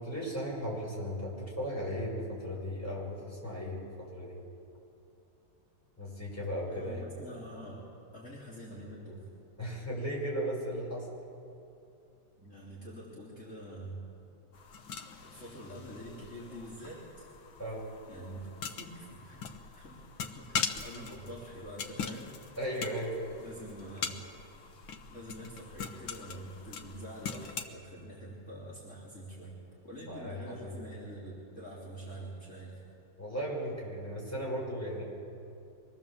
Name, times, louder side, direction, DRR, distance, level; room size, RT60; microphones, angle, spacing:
voice 1, 0.0-4.4 6.0-7.0 9.6-11.1 17.6-17.8 22.6-23.2 30.1-30.7 33.2-35.0, equal, 5° left, -4 dB, 5.8 m, -36 dB
voice 2, 6.6-9.3 12.4-14.0 15.2-17.3 18.1-22.3 23.4-24.2 25.1-29.5 29.8-32.8, equal, 40° left, -7 dB, 4.0 m, -46 dB
sound 1, 14.5-27.7, left 6 dB, 85° left, 1.9 m, -41 dB
25.0 x 20.0 x 7.3 m, 2.6 s
omnidirectional pair, 2.1 m